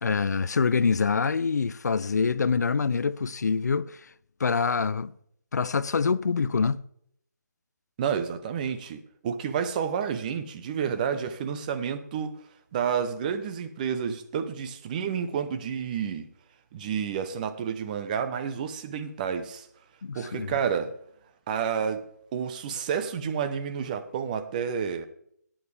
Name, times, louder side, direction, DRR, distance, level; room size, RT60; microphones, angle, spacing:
voice 1, 0.0-4.0 4.4-5.1 5.5-6.8 20.0-20.5, left 5 dB, 65° left, 0.4 m, -25 dB
voice 2, 8.0-12.3 12.7-16.3 16.7-19.7 20.1-20.9 21.5-22.0 22.3-25.1, right 7 dB, 25° right, 0.7 m, -30 dB
16.0 x 8.7 x 3.3 m
figure-of-eight pair, 150°, 10 cm